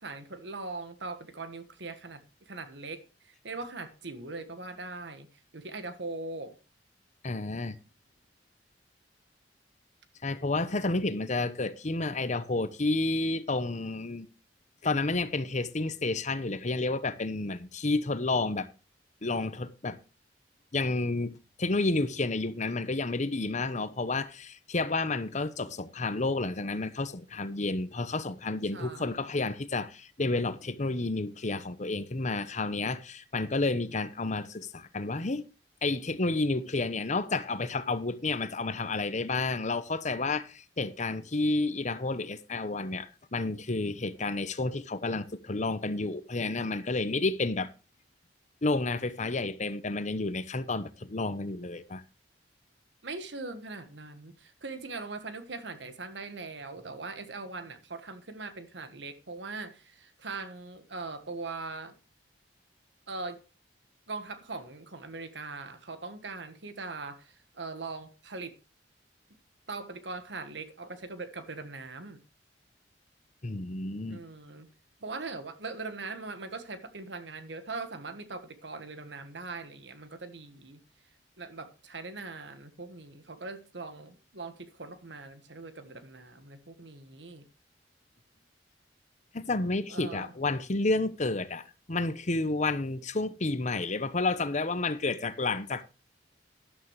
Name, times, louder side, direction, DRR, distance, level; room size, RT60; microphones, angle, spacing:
voice 1, 0.0-5.3 5.5-6.5 28.7-29.2 53.0-62.0 63.1-63.4 64.1-68.6 69.7-72.2 74.1-74.7 75.0-80.8 81.4-87.5 89.9-90.3, right 3 dB, 75° right, 1.5 m, -41 dB
voice 2, 7.2-7.8 10.2-14.3 14.8-18.7 19.2-20.0 20.7-35.4 35.8-47.7 48.6-52.0 73.4-74.2 89.3-95.8, left 3 dB, 40° left, 1.0 m, -30 dB
13.0 x 11.5 x 3.2 m
head